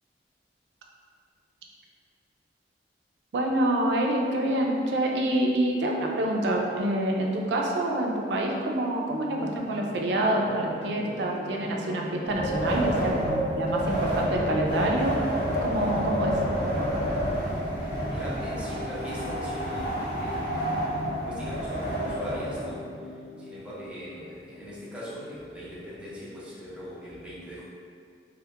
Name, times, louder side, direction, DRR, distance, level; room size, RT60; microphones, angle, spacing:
voice 1, 3.3-15.2 15.6-16.3, right 1 dB, 70° right, 0 dB, 0.3 m, -27 dB
sound 1, 9.3-26.2, left 2 dB, 85° left, 0.4 m, -40 dB
Wind, 12.3-22.6, equal, 50° left, 1.1 m, -29 dB
voice 2, 18.1-20.5 21.2-23.1 23.4-27.6, equal, 5° right, -9 dB, 0.5 m, -40 dB
2.2 x 2.0 x 2.8 m, 2.3 s
head